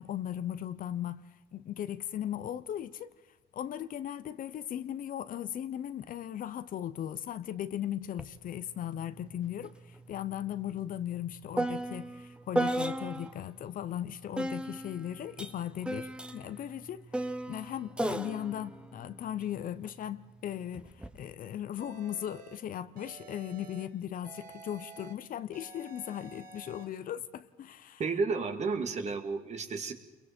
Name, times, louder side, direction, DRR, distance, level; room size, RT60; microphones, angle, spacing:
voice 1, 0.0-3.1 3.5-28.0, left 10 dB, 55° left, 0.9 m, -38 dB
sound 1, 8.2-8.3 8.7-13.4 14.4-19.9 20.7-21.2, right 1 dB, 5° right, 1.0 m, -36 dB
sound 2, 21.8-22.6 23.0-23.8 24.2-25.1 25.5-26.8, right 5 dB, 60° right, 2.8 m, -50 dB
voice 2, 28.0-29.9, right 4 dB, 40° right, 2.2 m, -32 dB
29.0 x 23.0 x 4.5 m
cardioid pair, 110°, 17 cm